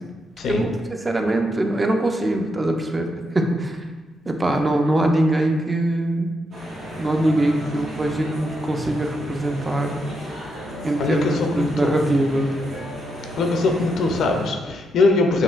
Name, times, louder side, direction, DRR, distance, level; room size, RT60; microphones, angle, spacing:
voice 1, 0.5-3.8 4.3-6.4 7.0-10.1 10.8-12.5, right 1 dB, 25° right, 4 dB, 0.5 m, -22 dB
sound 1, 6.5-14.5, equal, 60° right, 1.2 m, -34 dB
voice 2, 11.0-12.0 13.4-15.4, left 3 dB, 65° left, 3 dB, 0.4 m, -21 dB
5.4 x 2.5 x 2.4 m, 1.3 s
hypercardioid pair, 50°, 0 cm